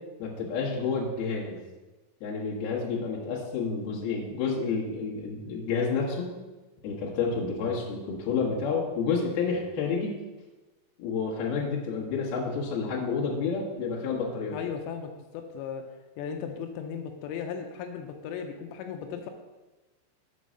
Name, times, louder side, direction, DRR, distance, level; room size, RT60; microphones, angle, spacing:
voice 1, 0.2-1.6 2.2-6.3 6.8-10.2 11.0-14.6, left 5 dB, 70° left, -4 dB, 3.0 m, -29 dB
voice 2, 14.5-15.9 16.2-19.3, left 7 dB, 85° left, 5 dB, 2.9 m, -36 dB
6.7 x 5.4 x 6.3 m, 1.2 s
omnidirectional pair, 5.1 m